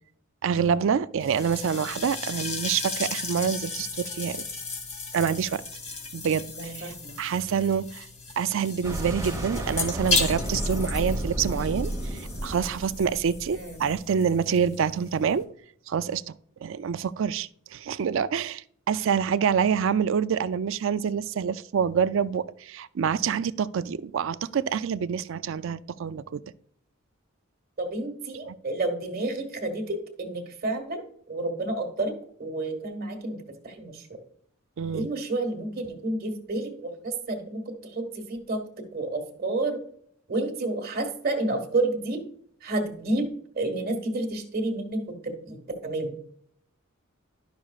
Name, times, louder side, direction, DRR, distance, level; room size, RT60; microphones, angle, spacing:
voice 1, 0.4-4.4 5.1-5.6 6.1-8.1 8.4-15.5 15.9-16.3 16.6-26.4 34.8-35.1, right 7 dB, 65° right, 0.4 m, -27 dB
sound 1, 1.2-15.4, left 3 dB, 35° left, 2.0 m, -35 dB
voice 2, 6.5-7.2 13.5-13.8 27.8-31.0 31.3-32.1 32.4-33.4 33.6-34.2 34.9-38.6 38.9-39.8 40.3-42.2 42.6-43.3 43.6-45.6 45.8-46.1, right 2 dB, 50° right, 1.6 m, -30 dB
sound 2, 8.8-14.0, right 1 dB, 15° right, 1.3 m, -32 dB
12.0 x 6.1 x 2.4 m
head